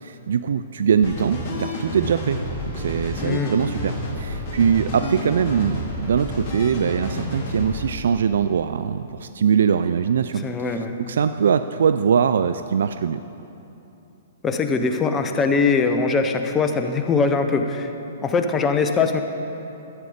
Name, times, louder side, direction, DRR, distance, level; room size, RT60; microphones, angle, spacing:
voice 1, 0.0-13.2, right 7 dB, 70° right, 11 dB, 0.3 m, -22 dB
sound 1, 1.0-7.9, left 1 dB, 35° left, 3.0 m, -30 dB
voice 2, 3.2-3.6 10.4-11.0 14.4-17.9 18.2-19.2, left 4 dB, 20° left, 6 dB, 0.8 m, -21 dB
13.0 x 8.3 x 5.0 m, 2.9 s
hypercardioid pair, 120°, 0 cm